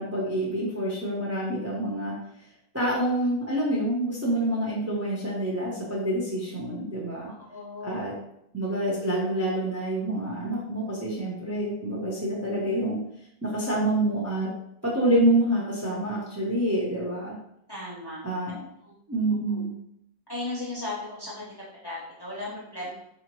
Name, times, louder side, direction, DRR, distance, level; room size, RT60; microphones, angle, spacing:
voice 1, 0.0-2.1 2.7-7.3 7.8-8.1 8.5-13.0 13.4-14.5 14.8-17.3 18.2-18.5 19.1-19.7, right 1 dB, 20° right, -4 dB, 0.4 m, -27 dB
voice 2, 7.3-8.1 17.7-18.2 18.8-18.9 19.5-19.6 20.3-22.9, left 2 dB, 25° left, -7 dB, 0.6 m, -36 dB
4.2 x 2.8 x 3.0 m, 0.76 s
omnidirectional pair, 1.6 m